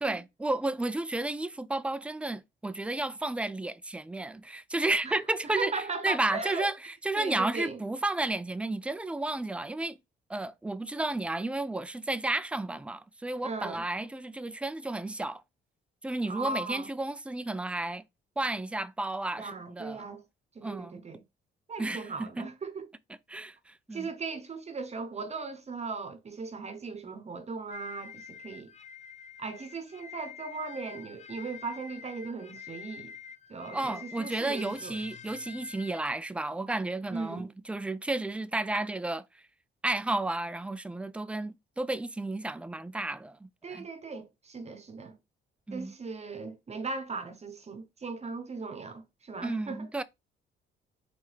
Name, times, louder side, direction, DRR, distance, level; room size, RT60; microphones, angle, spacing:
voice 1, 0.0-10.0 10.3-15.4 16.0-18.0 18.4-20.1 20.6-21.0 21.8-22.4 23.3-24.1 33.7-39.4 39.8-43.9 45.7-45.9 49.4-50.0, right 2 dB, 5° right, 0.3 m, -32 dB
voice 2, 5.6-6.7 7.2-7.8 13.4-13.8 16.3-16.9 19.4-20.2 20.5-21.2 21.7-22.9 23.9-28.7 29.4-33.1 33.5-35.0 37.1-37.5 43.6-45.2 45.7-49.9, right 4 dB, 35° right, 0.9 m, -38 dB
sound 1, 27.7-36.0, left 7 dB, 35° left, 0.6 m, -47 dB
4.5 x 3.4 x 3.3 m
cardioid pair, 90°, 20 cm